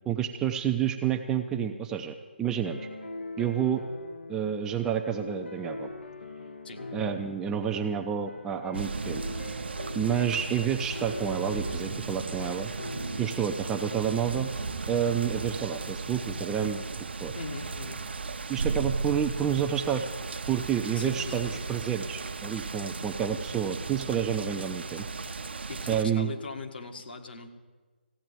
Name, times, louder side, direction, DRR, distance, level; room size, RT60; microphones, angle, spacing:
voice 1, 0.1-2.9 3.4-3.8 4.3-5.9 6.9-9.2 9.9-12.7 13.2-14.5 14.9-16.8 17.2-17.3 18.5-20.0 20.5-25.1 25.9-26.3, right 8 dB, 10° right, 4 dB, 0.5 m, -29 dB
sound 1, 2.6-14.6, left 2 dB, 85° left, 1.3 m, -42 dB
sound 2, 8.7-26.0, right 4 dB, 70° right, 0.7 m, -36 dB
voice 2, 17.3-18.0 21.0-21.6 25.7-27.5, left 4 dB, 60° left, 4 dB, 1.8 m, -40 dB
15.5 x 8.7 x 9.2 m, 1.3 s
figure-of-eight pair, 150°, 6 cm